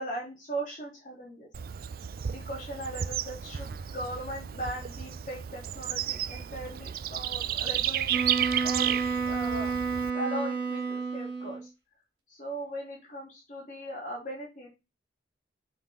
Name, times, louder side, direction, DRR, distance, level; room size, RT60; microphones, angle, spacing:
voice 1, 0.0-1.5 2.3-8.3 8.6-9.0 9.3-9.7 10.1-11.7 12.3-14.7, right 1 dB, 45° left, -4 dB, 3.0 m, -38 dB
Bird / Insect, 1.5-10.1, right 10 dB, 50° right, 0.3 m, -33 dB
Wind instrument woodwind instrument, 8.1-11.7, right 5 dB, 70° right, 3.4 m, -30 dB
5.7 x 5.7 x 4.4 m, 0.25 s
head